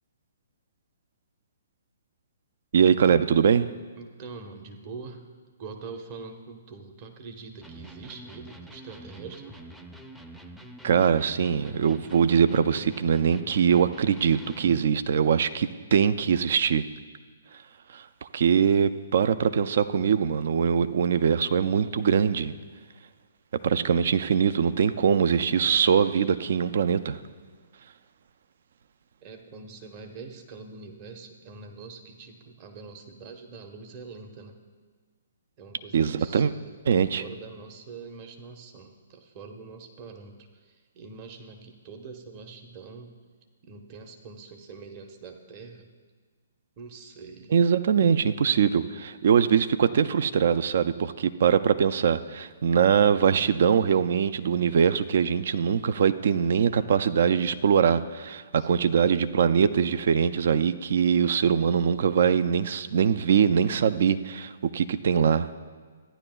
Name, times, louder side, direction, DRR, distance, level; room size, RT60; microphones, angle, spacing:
voice 1, 2.7-3.7 10.8-16.8 17.9-18.0 18.3-22.5 23.6-27.2 35.9-36.5 36.9-37.2 47.5-65.5, right 7 dB, 60° right, 12 dB, 0.4 m, -22 dB
voice 2, 4.0-5.3 5.6-9.6 29.2-34.6 35.6-43.2 43.7-45.9 46.8-47.5 58.6-58.8, right 4 dB, 35° right, 4 dB, 1.0 m, -44 dB
Electric guitar, 7.6-14.9, right 1 dB, 5° right, 0.5 m, -45 dB
14.5 x 10.0 x 2.3 m, 1.5 s
figure-of-eight pair, 130°, 0 cm